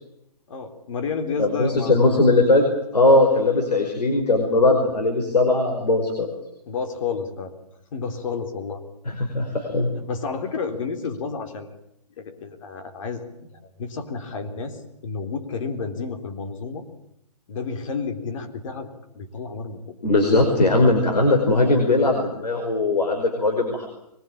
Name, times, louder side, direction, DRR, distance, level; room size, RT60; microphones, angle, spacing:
voice 1, 0.5-2.4 6.7-7.5 7.9-9.2 10.0-11.7 12.2-16.9 17.5-18.9 19.1-19.9 20.3-20.8, left 5 dB, 50° left, 7 dB, 3.8 m, -31 dB
voice 2, 1.4-2.6 2.9-6.3 9.1-9.9 20.0-23.9, left 2 dB, 85° left, 3 dB, 5.2 m, -19 dB
23.0 x 21.0 x 8.8 m, 0.80 s
hypercardioid pair, 145°, 20 cm